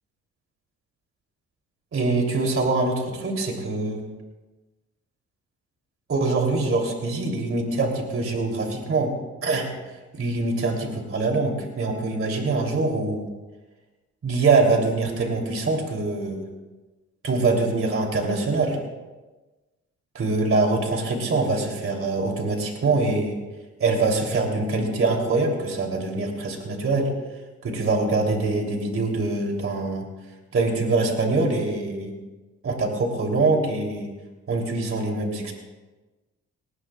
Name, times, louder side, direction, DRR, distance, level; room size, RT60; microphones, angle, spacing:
voice 1, 1.9-4.0 6.1-9.1 9.4-9.7 10.1-13.3 14.2-16.4 17.2-18.8 20.1-23.4 23.8-27.1 27.6-30.0 30.5-32.1 32.6-34.1 34.5-35.5, right 3 dB, 45° right, 1 dB, 3.3 m, -24 dB
20.0 x 19.0 x 2.4 m, 1.2 s
cardioid pair, 90°, 30 cm